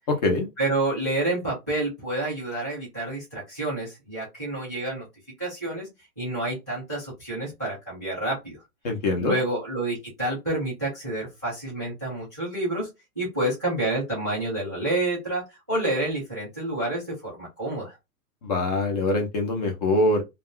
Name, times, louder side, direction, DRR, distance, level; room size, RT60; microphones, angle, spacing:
voice 1, 0.6-5.1 5.4-5.9 6.2-8.6 9.2-12.9 13.2-18.0, right 2 dB, 15° right, 0.4 m, -29 dB
voice 2, 8.8-9.4 18.4-20.2, left 2 dB, 25° left, 0.7 m, -23 dB
2.4 x 2.2 x 3.6 m
hypercardioid pair, 155°, 46 cm